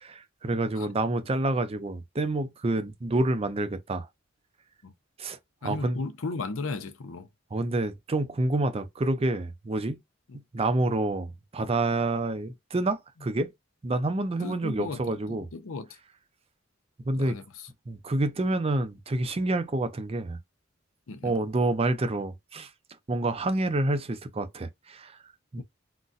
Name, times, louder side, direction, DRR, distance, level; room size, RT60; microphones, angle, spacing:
voice 1, 0.0-4.1 5.2-5.4 5.6-6.0 7.5-10.0 10.5-13.5 13.8-15.5 17.1-17.4 17.9-20.4 21.2-22.7 23.1-25.2 25.5-25.6, right 2 dB, 30° right, 0.5 m, -28 dB
voice 2, 5.6-7.3 10.3-10.4 14.4-16.0 17.1-17.7 21.1-21.4 25.6-25.7, left 3 dB, 75° left, 0.6 m, -36 dB
3.9 x 2.2 x 2.5 m
head